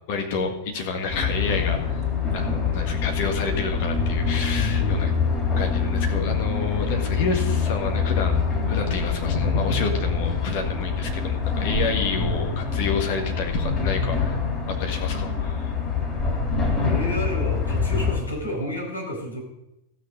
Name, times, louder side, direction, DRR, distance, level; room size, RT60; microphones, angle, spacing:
voice 1, 0.1-2.0 2.3-5.1 5.6-14.4 14.7-15.7, left 4 dB, 50° left, 2 dB, 1.7 m, -29 dB
sound 1, 1.1-18.2, left 5 dB, 20° left, 3.3 m, -25 dB
voice 2, 4.5-5.2 12.1-12.6 16.8-19.4, left 1 dB, 80° left, -2 dB, 4.9 m, -30 dB
15.5 x 6.4 x 5.3 m, 0.89 s
figure-of-eight pair, 90°, 0 cm